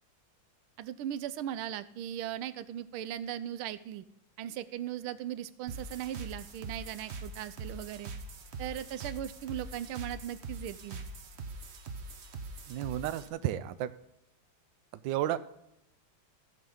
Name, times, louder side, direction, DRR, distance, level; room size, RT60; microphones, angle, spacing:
voice 1, 0.8-4.0 4.4-8.1 8.6-11.0, right 11 dB, 90° right, 14 dB, 1.5 m, -38 dB
sound 1, 5.7-13.3, right 3 dB, 55° right, 0.7 m, -43 dB
voice 2, 12.7-13.9 15.0-15.4, right 12 dB, 75° right, 13 dB, 1.2 m, -32 dB
15.0 x 6.5 x 5.3 m, 0.82 s
omnidirectional pair, 2.3 m